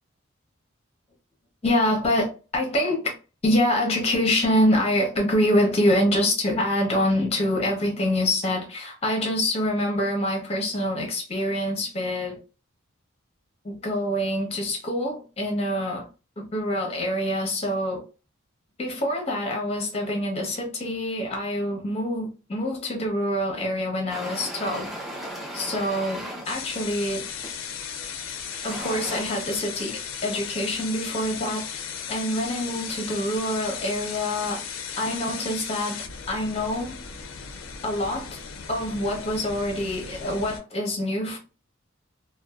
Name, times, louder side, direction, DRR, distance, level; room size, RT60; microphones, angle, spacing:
voice 1, 1.6-3.1 3.4-12.4 13.6-16.1 16.4-18.0 18.8-24.9 25.5-27.2 28.6-31.8 32.1-34.6 35.0-37.0 37.8-38.4 38.7-41.4, left 1 dB, 30° left, 0.7 m, -25 dB
sound 1, 24.1-26.5 27.4-27.6 28.3-29.2, equal, ahead, 0.4 m, -36 dB
sound 2, 26.4-40.6, left 7 dB, 70° left, 0.4 m, -36 dB
2.5 x 2.1 x 2.3 m
head